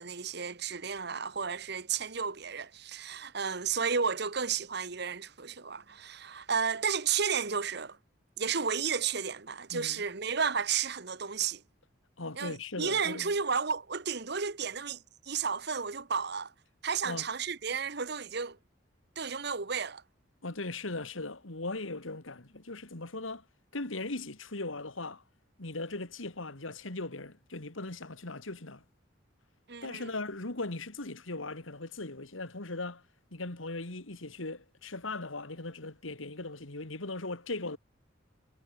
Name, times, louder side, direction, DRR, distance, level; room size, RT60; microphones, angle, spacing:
voice 1, 0.0-8.0 8.4-11.6 12.4-16.5 16.8-18.6 19.2-20.0 29.7-30.1, right 6 dB, 55° right, 1.3 m, -32 dB
voice 2, 9.7-10.0 12.2-13.3 17.0-17.3 20.4-23.4 23.7-25.2 25.6-28.8 29.8-33.0 33.3-37.8, left 2 dB, 90° left, 2.6 m, -38 dB
head